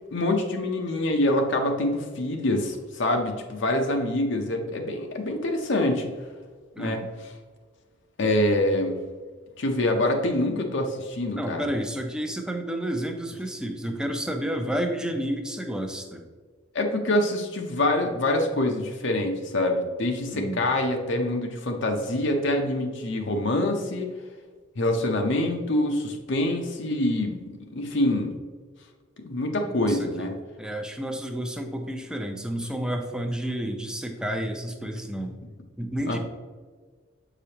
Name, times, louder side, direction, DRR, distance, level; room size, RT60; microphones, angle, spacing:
voice 1, 0.1-6.1 6.8-7.3 8.2-8.9 9.6-11.6 16.7-24.1 24.8-27.4 27.7-28.3 29.3-30.3 36.1-36.2, left 1 dB, 60° left, 3 dB, 0.7 m, -25 dB
voice 2, 6.7-7.1 11.4-16.2 20.3-20.6 29.6-30.3 30.6-35.4 35.8-36.2, equal, 5° right, 4 dB, 0.5 m, -30 dB
7.2 x 5.0 x 2.9 m, 1.5 s
head